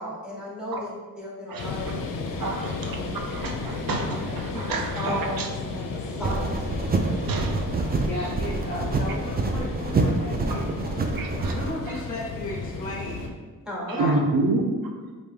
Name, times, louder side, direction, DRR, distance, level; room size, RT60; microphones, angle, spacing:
voice 1, 0.0-1.9 2.4-3.1 4.5-6.5 13.7-14.1, equal, ahead, -5 dB, 1.0 m, -34 dB
sound 1, 1.6-13.3, left 3 dB, 65° left, 0.5 m, -34 dB
voice 2, 2.4-3.0 3.3-5.5 7.3-7.9 11.2-11.5 11.9-12.0 13.9-14.6, right 2 dB, 75° right, 2 dB, 0.6 m, -28 dB
sound 2, 6.2-11.7, right 3 dB, 30° right, 0.3 m, -27 dB
voice 3, 8.0-11.3 11.5-13.3 13.9-14.3, left 2 dB, 25° left, -4 dB, 0.7 m, -35 dB
3.4 x 2.7 x 3.3 m, 1.4 s
cardioid pair, 75°, 35 cm